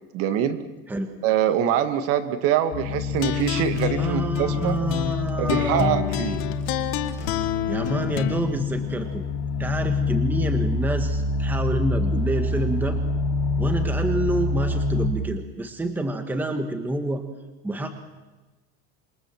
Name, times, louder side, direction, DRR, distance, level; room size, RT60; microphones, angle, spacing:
voice 1, 0.1-0.6 1.2-4.7 5.4-6.4, right 10 dB, 45° right, 10 dB, 1.9 m, -24 dB
sound 1, 2.7-15.1, left 3 dB, 80° left, 3.9 m, -27 dB
sound 2, 3.1-8.4, left 12 dB, 50° left, 1.9 m, -28 dB
voice 2, 4.0-6.0 7.7-9.2 9.6-13.0 13.6-17.2 17.6-17.9, right 1 dB, 5° right, 7 dB, 1.4 m, -27 dB
27.0 x 23.5 x 7.6 m, 1.2 s
cardioid pair, 175°, 33 cm